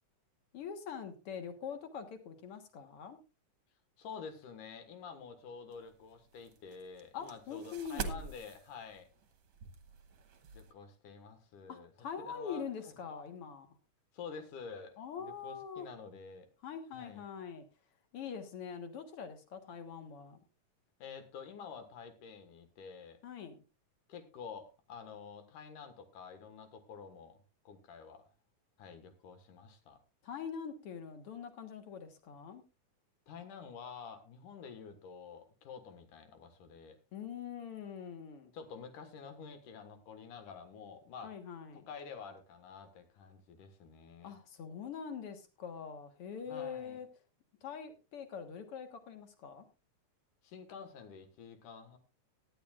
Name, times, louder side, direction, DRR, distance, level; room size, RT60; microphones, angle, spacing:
voice 1, 0.5-3.2 7.1-8.2 11.7-13.7 15.0-15.9 16.6-17.6 18.1-20.4 23.2-23.6 30.2-32.6 37.1-38.5 41.2-41.9 44.2-47.1 47.6-49.7, left 7 dB, 55° left, 2.1 m, -44 dB
voice 2, 4.0-9.1 10.5-11.9 12.2-12.9 14.1-16.5 16.9-17.2 21.0-23.2 24.1-28.2 28.8-30.0 33.3-37.0 38.5-41.3 41.7-44.4 46.5-47.0 50.4-52.0, left 6 dB, 90° left, 3.1 m, -49 dB
sound 1, 5.7-10.7, right 5 dB, 60° right, 1.5 m, -46 dB
17.5 x 11.0 x 2.4 m
omnidirectional pair, 3.5 m